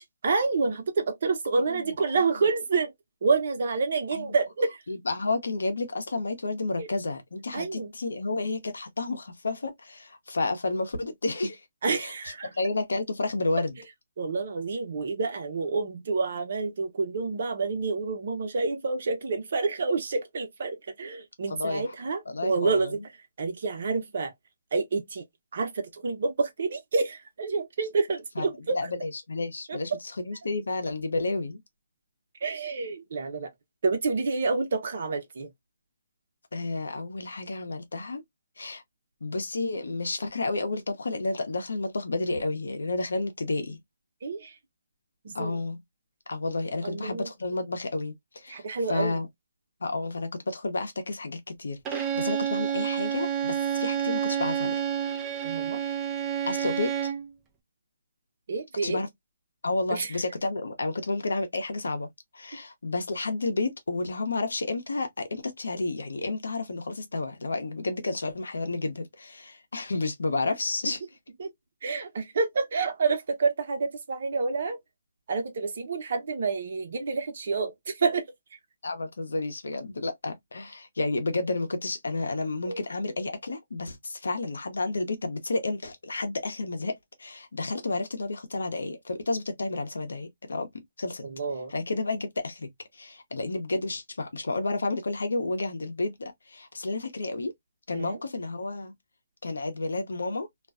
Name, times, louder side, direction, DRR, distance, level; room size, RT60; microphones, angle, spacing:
voice 1, 0.0-2.9 3.2-4.8 6.8-6.9 7.5-7.9 11.8-12.5 14.2-23.0 23.4-24.3 24.7-25.2 25.5-28.8 32.4-33.5 33.8-35.5 44.2-44.5 45.2-45.6 46.8-47.3 48.5-49.2 55.4-55.8 58.5-59.0 59.9-60.1 70.9-71.0 71.4-71.5 71.8-74.8 75.3-78.2 82.7-82.8 91.2-91.7 97.9-98.2, right 4 dB, 60° right, 0.8 m, -28 dB
voice 2, 1.7-2.2 4.1-4.4 4.9-11.6 12.0-12.1 12.4-13.8 21.5-21.9 22.3-23.0 28.4-28.5 28.7-29.9 30.2-31.6 36.5-38.2 38.6-38.8 39.2-43.8 45.3-45.8 46.3-48.6 48.9-49.3 49.8-54.8 55.8-56.0 56.5-57.1 58.8-59.1 59.6-62.1 62.3-71.0 78.8-91.3 91.7-92.7 92.9-97.5 97.9-98.9 99.4-100.5, left 3 dB, 85° left, 0.8 m, -31 dB
Bowed string instrument, 51.9-57.3, right 9 dB, 15° right, 0.5 m, -29 dB
2.5 x 2.2 x 2.4 m
hypercardioid pair, 150°, 0 cm